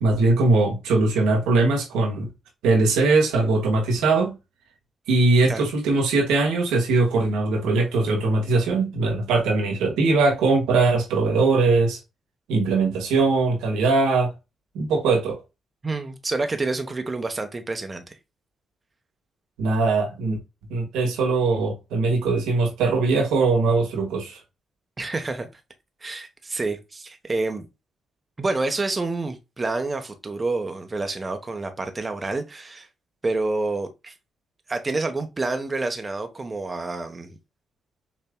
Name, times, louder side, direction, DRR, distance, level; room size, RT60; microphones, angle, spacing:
voice 1, 0.0-2.3 2.6-4.4 5.1-12.0 12.5-14.3 14.7-15.4 19.6-20.4 20.7-24.4, right 3 dB, 85° right, 1.5 m, -21 dB
voice 2, 15.8-18.2 25.0-25.5 26.0-27.7 28.4-32.9 33.2-34.1 34.7-37.4, right 3 dB, 35° right, 1.0 m, -28 dB
5.7 x 3.3 x 2.2 m
supercardioid pair, 50°, 0 cm